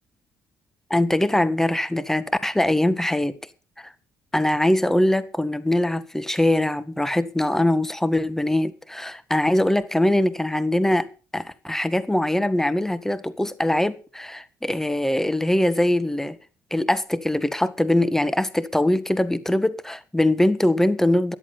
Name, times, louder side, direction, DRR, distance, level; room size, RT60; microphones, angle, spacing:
voice 1, 0.9-3.3 3.8-3.9 4.3-11.1 11.3-16.4 16.7-21.3, left 1 dB, 5° left, 1.6 m, -22 dB
14.0 x 11.0 x 5.8 m
hypercardioid pair, 55°, 7 cm